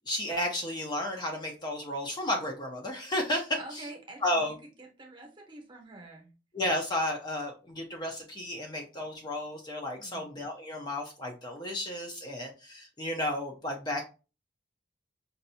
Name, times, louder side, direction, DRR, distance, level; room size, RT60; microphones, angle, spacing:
voice 1, 0.1-3.8 4.2-4.5 6.5-14.0, left 1 dB, 20° left, 1 dB, 0.6 m, -33 dB
voice 2, 3.5-4.5 4.8-6.3 10.0-10.3, right 2 dB, 25° right, 1 dB, 1.0 m, -47 dB
5.3 x 2.6 x 2.7 m, 0.32 s
head